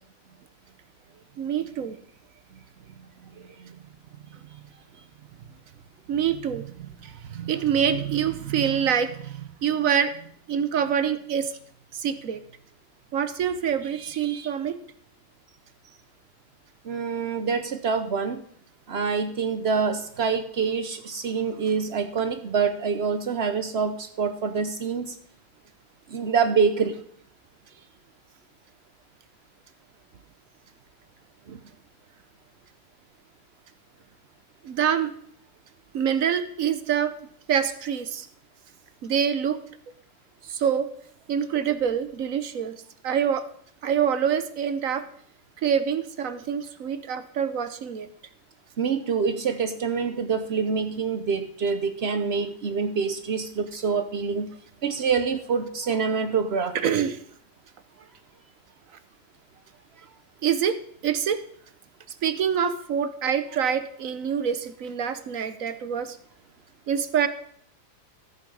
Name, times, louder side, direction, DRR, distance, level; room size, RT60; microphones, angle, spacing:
voice 1, 1.4-2.0 3.6-3.8 6.1-11.5 11.9-12.4 13.1-14.8 34.6-35.1 35.9-37.1 37.5-38.3 39.0-39.6 40.5-40.9 41.3-42.7 43.0-43.4 43.8-45.0 45.6-48.1 56.7-57.2 60.4-61.4 62.2-66.2 66.9-67.3, right 8 dB, 60° right, 12 dB, 0.9 m, -26 dB
voice 2, 16.9-18.4 18.9-25.1 26.1-27.0 31.5-31.6 48.8-54.5 54.8-56.8, right 5 dB, 85° right, 9 dB, 0.5 m, -26 dB
14.0 x 8.2 x 5.4 m, 0.63 s
omnidirectional pair, 2.1 m